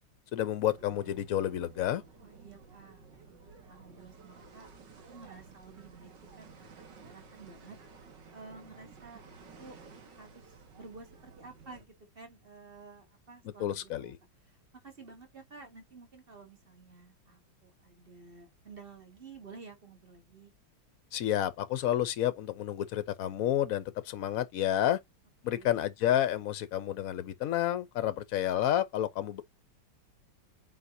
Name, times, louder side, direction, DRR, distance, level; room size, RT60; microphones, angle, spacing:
voice 1, 0.3-2.0 13.6-14.2 21.1-25.0 25.4-29.4, left 12 dB, 65° left, 0.9 m, -30 dB
sound 1, 0.7-11.9, right 5 dB, 65° right, 2.3 m, -54 dB
voice 2, 2.2-4.7 5.1-6.1 6.4-7.8 8.3-9.2 9.6-9.8 10.1-14.1 14.4-20.5 25.4-25.8, right 4 dB, 30° right, 2.0 m, -52 dB
8.7 x 4.8 x 2.6 m
omnidirectional pair, 2.0 m